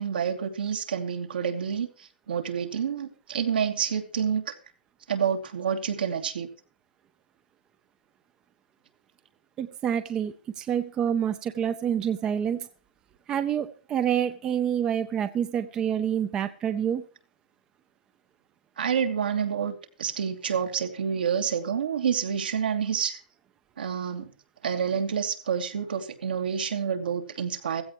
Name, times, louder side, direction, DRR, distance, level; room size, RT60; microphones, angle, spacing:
voice 1, 0.0-4.5 5.1-6.5 18.8-23.2 23.8-24.3 24.6-27.8, right 7 dB, 75° right, 4 dB, 2.8 m, -28 dB
voice 2, 9.6-12.6 13.3-17.0, right 9 dB, 15° right, 12 dB, 0.6 m, -27 dB
15.5 x 15.5 x 3.1 m, 0.38 s
hypercardioid pair, 165°, 5 cm